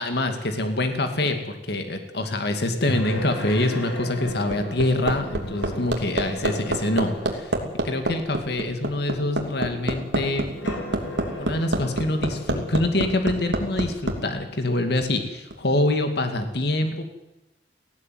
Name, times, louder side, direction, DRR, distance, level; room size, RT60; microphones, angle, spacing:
voice 1, 0.0-7.5 7.8-10.5 11.4-17.0, left 1 dB, 65° left, 7 dB, 2.3 m, -25 dB
sound 1, 2.9-7.5 8.3-8.4 10.5-13.1, equal, 90° left, 5.8 m, -36 dB
Hammer, 4.3-14.2 15.5-15.6, right 1 dB, 80° right, 3.2 m, -26 dB
18.5 x 16.5 x 9.4 m, 0.94 s
head